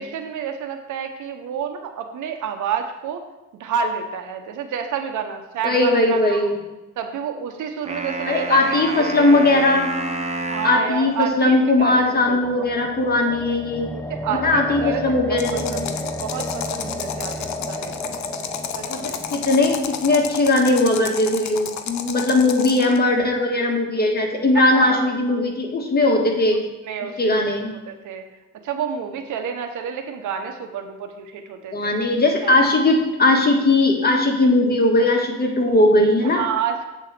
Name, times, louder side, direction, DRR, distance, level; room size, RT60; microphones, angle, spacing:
voice 1, 0.0-3.2 3.6-6.5 7.0-9.6 10.5-12.7 13.9-15.0 15.3-15.9 16.2-18.2 18.8-19.3 24.5-25.4 26.8-27.5 27.9-28.2 28.6-31.9 32.4-32.7 36.2-36.8, right 7 dB, 75° right, 6 dB, 1.0 m, -29 dB
voice 2, 5.6-6.6 8.3-9.9 10.6-13.9 14.3-15.9 18.9-26.6 27.2-27.7 31.7-36.4, left 2 dB, 30° left, 1 dB, 1.7 m, -19 dB
sound 1, 7.9-10.9, right 2 dB, 20° right, 0.9 m, -29 dB
sound 2, 11.6-21.7, left 1 dB, 5° left, 0.7 m, -33 dB
sound 3, 15.4-23.0, left 8 dB, 65° left, 0.7 m, -32 dB
8.2 x 4.0 x 6.7 m, 1.0 s
cardioid pair, 90°, 30 cm